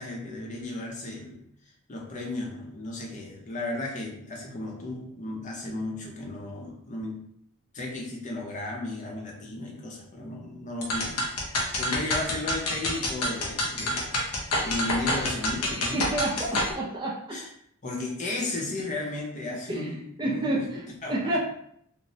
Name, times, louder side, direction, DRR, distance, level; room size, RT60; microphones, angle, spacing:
voice 1, 0.0-1.4 1.9-7.2 7.7-11.2 11.8-16.1 17.3-17.5 17.8-21.4, left 2 dB, 35° left, -1 dB, 0.6 m, -34 dB
sound 1, 10.8-16.7, left 1 dB, 85° left, 0.6 m, -28 dB
voice 2, 15.9-17.4 19.7-19.8 20.2-20.7 21.1-21.4, right 1 dB, 20° right, -3 dB, 0.4 m, -29 dB
2.9 x 2.0 x 2.7 m, 0.69 s
head